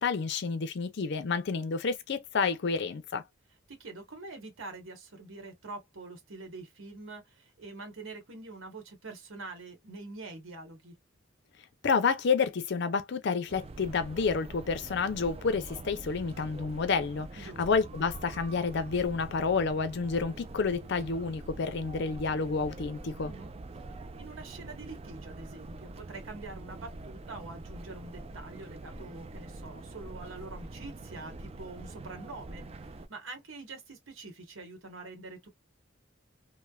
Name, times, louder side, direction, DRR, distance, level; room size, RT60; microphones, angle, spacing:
voice 1, 0.0-3.2 11.8-23.3, left 5 dB, 60° left, 0.5 m, -29 dB
voice 2, 3.7-10.9 17.4-17.6 23.2-23.5 24.1-35.5, right 3 dB, 85° right, 1.1 m, -45 dB
sound 1, 13.5-33.1, right 2 dB, 30° right, 0.3 m, -45 dB
3.1 x 2.1 x 2.2 m
head